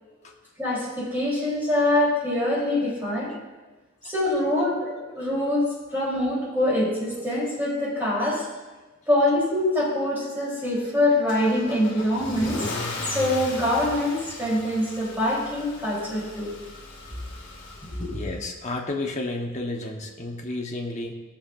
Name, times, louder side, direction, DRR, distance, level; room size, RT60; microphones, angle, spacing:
voice 1, 0.6-3.3 4.0-8.5 9.1-16.5 17.9-18.1, left 1 dB, 10° right, -7 dB, 3.5 m, -24 dB
Car / Engine starting / Accelerating revving vroom, 11.3-18.4, left 2 dB, 55° left, 2.1 m, -37 dB
voice 2, 18.1-21.2, left 2 dB, 30° left, 1 dB, 1.1 m, -32 dB
17.0 x 7.2 x 2.6 m, 1.2 s
head